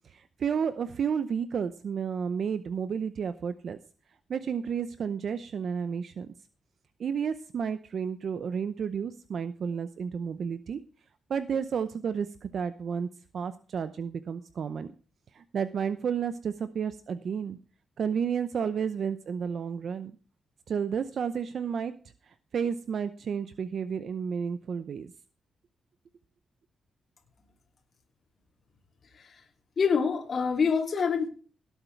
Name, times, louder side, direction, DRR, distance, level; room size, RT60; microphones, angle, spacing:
voice 1, 0.0-3.8 4.3-6.3 7.0-10.8 11.3-13.1 13.3-14.9 15.3-17.6 18.0-20.1 20.7-21.9 22.2-25.1, right 7 dB, 55° right, 12 dB, 0.7 m, -31 dB
voice 2, 29.8-31.3, left 6 dB, 45° left, 1 dB, 2.9 m, -26 dB
18.0 x 8.1 x 4.6 m, 0.39 s
cardioid pair, 125°, 0 cm